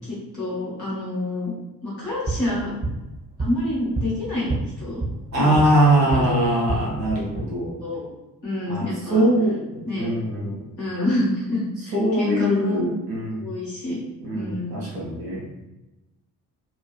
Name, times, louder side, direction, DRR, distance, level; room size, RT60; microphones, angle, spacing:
voice 1, 0.0-1.5 1.8-2.7 3.4-5.0 5.4-5.7 6.1-6.3 6.7-6.8 7.8-8.1 8.4-9.3 9.9-10.1 10.8-12.8 13.4-14.0 14.3-14.8, left 1 dB, 85° left, -9 dB, 1.0 m, -28 dB
sound 1, 2.0-6.3 6.6-7.4, right 2 dB, 15° right, 0.8 m, -30 dB
voice 2, 5.3-7.8 8.7-10.7 11.9-13.4 14.2-15.7, right 1 dB, 85° right, -6 dB, 0.7 m, -22 dB
3.1 x 2.2 x 2.3 m, 1.0 s
figure-of-eight pair, 40°, 49 cm